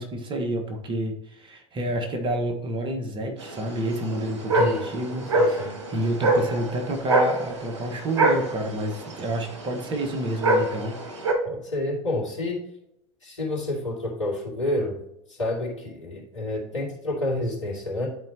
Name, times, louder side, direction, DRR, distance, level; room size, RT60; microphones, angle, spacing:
voice 1, 0.0-11.0, right 1 dB, 30° right, 4 dB, 1.5 m, -29 dB
sound 1, 3.4-11.3, right 2 dB, 70° right, 1.5 m, -25 dB
voice 2, 4.6-4.9 5.3-5.8 11.4-12.7 13.2-15.0 15.3-18.1, left 1 dB, 80° left, -4 dB, 2.5 m, -29 dB
11.0 x 4.5 x 2.9 m, 0.80 s
figure-of-eight pair, 75°, 16 cm